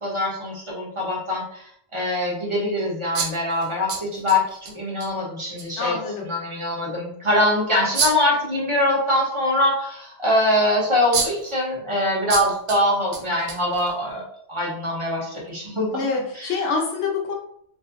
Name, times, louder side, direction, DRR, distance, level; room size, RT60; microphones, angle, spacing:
voice 1, 0.0-6.0 6.2-14.2 14.5-16.0 16.3-16.7, left 1 dB, 30° right, -4 dB, 0.6 m, -23 dB
sound 1, 3.1-4.7 5.0-5.1 5.6-5.7 7.9-8.4 10.6-10.7 11.1-11.5 12.3-12.8 13.1-14.1, right 5 dB, 75° right, 0.9 m, -27 dB
voice 2, 5.8-6.3 15.9-17.3, left 4 dB, 75° left, 0 dB, 1.0 m, -26 dB
2.5 x 2.5 x 2.5 m, 0.69 s
omnidirectional pair, 1.2 m